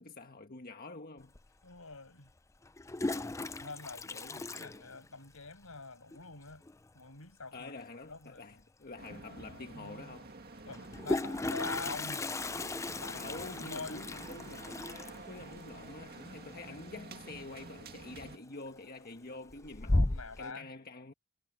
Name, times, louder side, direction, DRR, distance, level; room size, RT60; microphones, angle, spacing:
voice 1, 0.0-1.3 4.0-4.6 7.5-10.3 13.1-20.0 20.4-21.1, left 2 dB, 45° left, 1.5 m, -47 dB
Toilet flush, 1.4-1.5 2.6-5.5 5.7-5.8 6.1-6.2 6.5-6.9 8.6-8.7 9.0-9.1 10.7-17.4 17.7-18.1 18.5-19.1 19.5-20.5, left 2 dB, 15° left, 0.4 m, -36 dB
voice 2, 1.6-2.3 3.1-6.6 6.9-7.7 8.1-8.6 10.7-12.3 13.0-13.4 13.7-14.1 19.8-20.7, left 3 dB, 75° left, 6.6 m, -45 dB
sound 1, 9.0-18.4, right 3 dB, 45° right, 2.1 m, -49 dB
head